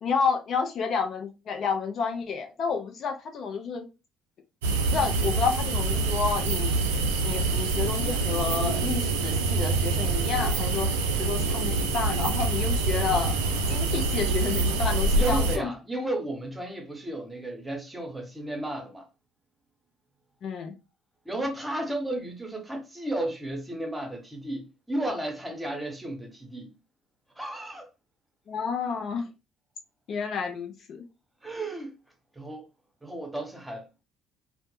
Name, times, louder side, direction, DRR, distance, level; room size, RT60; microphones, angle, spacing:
voice 1, 0.0-3.8 4.9-10.9 11.2-13.3 13.7-15.7 20.4-20.7 28.5-29.3 30.1-31.0, left 5 dB, 55° left, 0.4 m, -30 dB
sound 1, 4.6-15.6, right 3 dB, 80° right, 0.3 m, -26 dB
voice 2, 15.1-19.0 21.3-26.7 27.4-27.9 31.4-31.9 32.4-32.6 33.0-34.0, right 1 dB, 10° right, 0.8 m, -33 dB
2.0 x 2.0 x 3.0 m
hypercardioid pair, 55°, 0 cm